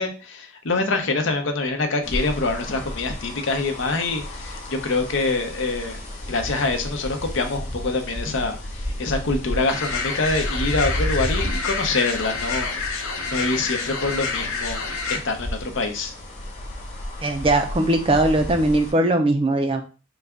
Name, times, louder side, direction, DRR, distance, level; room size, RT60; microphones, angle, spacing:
voice 1, 0.0-6.0 6.3-12.9 13.3-16.1, left 3 dB, 65° left, 5 dB, 0.7 m, -25 dB
sound 1, 2.0-18.9, left 1 dB, 30° left, 1.1 m, -32 dB
sound 2, 9.7-15.2, left 4 dB, 90° left, 0.9 m, -28 dB
voice 2, 17.2-19.8, right 2 dB, 25° right, 5 dB, 0.4 m, -20 dB
4.0 x 2.3 x 3.4 m, 0.34 s
head